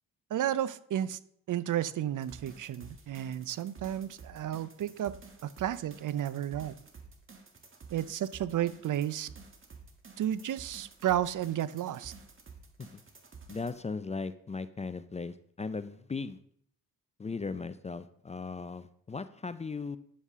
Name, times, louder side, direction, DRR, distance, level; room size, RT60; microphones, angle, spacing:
voice 1, 0.3-1.2 1.5-5.2 5.4-6.8 7.9-9.3 10.2-12.1, right 11 dB, 55° right, 17 dB, 0.6 m, -32 dB
sound 1, 2.2-13.8, right 4 dB, 35° right, 1.6 m, -52 dB
voice 2, 13.5-16.4 17.2-20.0, left 4 dB, 20° left, 14 dB, 0.4 m, -37 dB
9.8 x 7.2 x 3.6 m, 0.67 s
cardioid pair, 75°, 37 cm